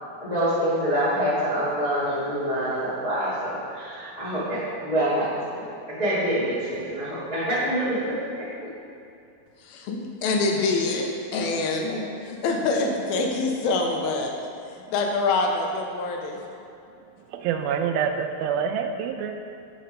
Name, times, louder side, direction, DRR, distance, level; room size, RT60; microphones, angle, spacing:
voice 1, 0.2-8.5, equal, 65° left, -11 dB, 0.4 m, -26 dB
voice 2, 9.6-14.3 14.9-16.4, left 3 dB, 85° left, 1 dB, 2.5 m, -25 dB
voice 3, 17.3-19.3, right 7 dB, 85° right, 5 dB, 2.4 m, -26 dB
6.8 x 5.1 x 5.2 m, 2.6 s
omnidirectional pair, 4.2 m